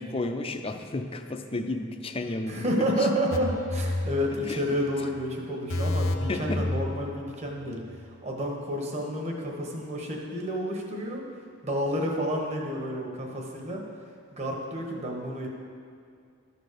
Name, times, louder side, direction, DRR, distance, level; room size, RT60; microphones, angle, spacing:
voice 1, 0.0-2.6 4.5-4.6 6.3-6.6, left 2 dB, 25° left, 6 dB, 0.5 m, -32 dB
voice 2, 2.5-11.2 11.6-13.8 14.3-15.5, equal, 30° right, 0 dB, 1.2 m, -30 dB
sound 1, 3.3-4.9 5.1-5.3 5.7-7.6 7.9-8.0, left 1 dB, 75° left, 0.7 m, -30 dB
12.0 x 4.1 x 6.7 m, 2.3 s
head